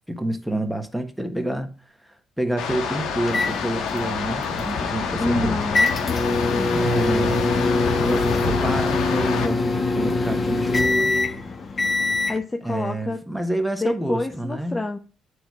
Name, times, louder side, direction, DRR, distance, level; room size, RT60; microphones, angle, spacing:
voice 1, 0.1-1.7 2.0-5.6 6.7-7.5 8.0-11.4 12.6-14.8, right 1 dB, ahead, 1.2 m, -28 dB
sound 1, 2.6-9.5, left 5 dB, 90° left, 1.2 m, -27 dB
sound 2, 3.3-12.4, left 3 dB, 45° left, 1.1 m, -24 dB
voice 2, 5.2-5.9 6.5-6.9 12.3-13.2 13.7-15.0, left 2 dB, 20° left, 0.7 m, -27 dB
9.0 x 3.9 x 4.7 m
cardioid pair, 90°, 0 cm